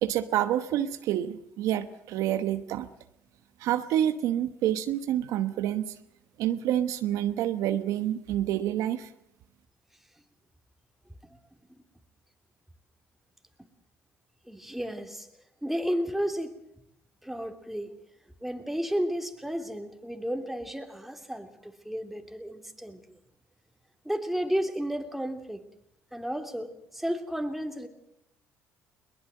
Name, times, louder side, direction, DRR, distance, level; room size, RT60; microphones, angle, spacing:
voice 1, 0.0-2.9 3.6-6.0 6.4-9.1, right 11 dB, 75° right, 10 dB, 1.1 m, -28 dB
voice 2, 14.5-15.3 15.6-16.5 17.2-17.9 18.4-23.2 24.0-25.6 26.1-27.9, equal, 5° right, 5 dB, 3.0 m, -32 dB
22.0 x 19.5 x 7.7 m, 0.80 s
supercardioid pair, 70°, 6 cm